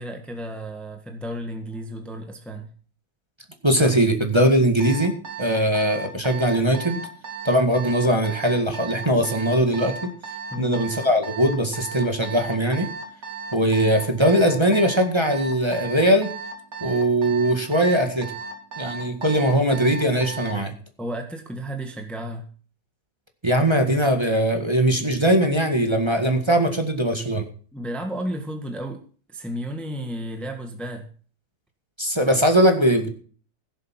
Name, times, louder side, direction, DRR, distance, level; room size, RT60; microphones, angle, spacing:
voice 1, 0.0-2.7 10.5-10.8 21.0-22.5 27.7-29.0 29.3-31.1, equal, ahead, 4 dB, 1.5 m, -33 dB
voice 2, 3.6-7.0 7.4-10.1 10.6-12.9 13.5-16.3 16.8-18.3 18.8-20.7 23.4-27.4 32.0-33.1, right 1 dB, 20° right, 4 dB, 1.8 m, -20 dB
Alarm, 4.8-20.6, right 5 dB, 65° right, 2.9 m, -35 dB
16.0 x 7.7 x 5.9 m, 0.42 s
omnidirectional pair, 1.6 m